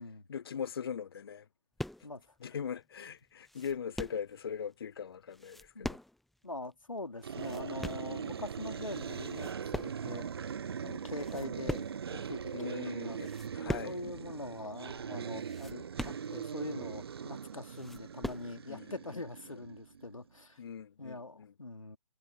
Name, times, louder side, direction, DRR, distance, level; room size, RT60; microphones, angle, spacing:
voice 1, 0.3-1.4 2.4-6.0 12.5-14.0 18.7-18.9 20.6-21.5, left 7 dB, 45° left, 1.0 m, -40 dB
sound 1, 1.8-2.2 2.7-2.8 3.2-4.3 5.3-6.4 6.6-6.7 7.2-8.1 8.7-9.0 9.2-10.3 10.6-10.7 11.1-12.1 12.6-12.8 13.2-14.1 14.3-14.4 14.8-14.9 15.3-16.6 17.1-17.2 17.5-18.5, left 1 dB, ahead, 0.7 m, -41 dB
voice 2, 2.0-2.6 5.7-6.0 6.4-10.3 10.8-13.2 13.7-20.6 21.0-22.0, left 2 dB, 75° left, 3.2 m, -43 dB
sound 2, 7.2-20.1, right 7 dB, 50° right, 0.9 m, -41 dB
figure-of-eight pair, 135°, 17 cm